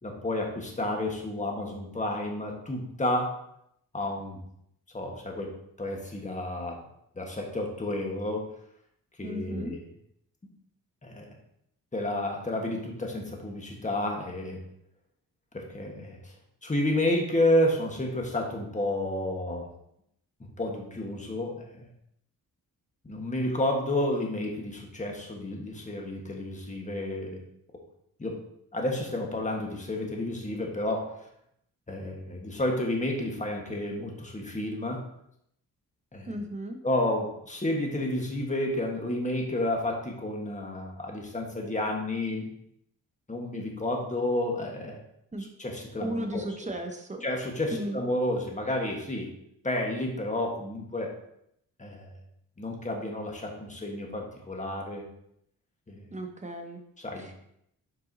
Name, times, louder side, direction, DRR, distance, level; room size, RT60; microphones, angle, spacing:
voice 1, 0.0-3.3 3.9-4.4 4.9-5.5 5.8-6.8 7.2-8.4 9.2-9.8 11.0-11.3 11.9-14.6 15.5-16.3 16.6-19.7 20.6-21.9 23.0-27.4 28.2-28.4 28.7-31.1 31.9-35.0 36.1-36.3 36.8-42.5 43.3-45.0 45.6-46.7 47.2-49.3 49.6-51.1 51.8-52.2 52.6-55.0 55.9-56.0 57.0-57.3, left 1 dB, 20° left, 1 dB, 1.5 m, -30 dB
voice 2, 9.2-9.7 36.3-36.8 45.3-45.5 46.0-47.2 47.7-48.0 56.1-56.8 57.2-57.3, right 1 dB, 20° right, 4 dB, 1.0 m, -35 dB
7.7 x 4.5 x 2.8 m, 0.74 s
cardioid pair, 80°, 36 cm